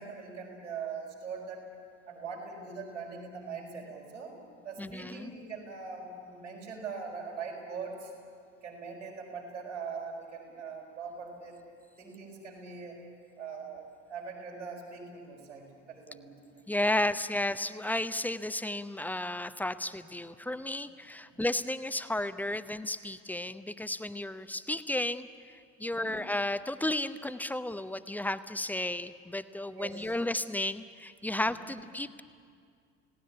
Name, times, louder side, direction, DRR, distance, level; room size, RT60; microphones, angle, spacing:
voice 1, 0.0-1.7 2.1-4.3 4.6-8.1 8.6-11.6 12.0-13.0 13.4-16.6 25.8-26.2 29.7-30.1 31.4-31.8, right 5 dB, 80° right, -3 dB, 5.5 m, -42 dB
voice 2, 4.8-5.3 16.7-25.3 25.8-32.2, left 1 dB, 5° left, 12 dB, 0.8 m, -33 dB
30.0 x 18.0 x 8.6 m, 2.2 s
figure-of-eight pair, 60°, 36 cm